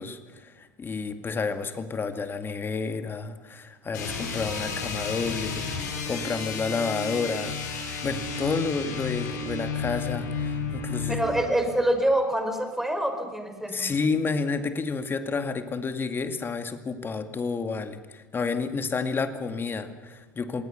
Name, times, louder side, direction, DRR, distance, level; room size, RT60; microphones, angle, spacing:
voice 1, 0.0-11.3 13.7-20.7, left 4 dB, 20° left, 8 dB, 2.2 m, -30 dB
sound 1, 3.9-11.4, left 5 dB, 70° left, 6.1 m, -32 dB
voice 2, 11.1-13.9, right 1 dB, 5° right, 6 dB, 4.4 m, -26 dB
27.5 x 18.5 x 6.9 m, 1.3 s
figure-of-eight pair, 80°, 10 cm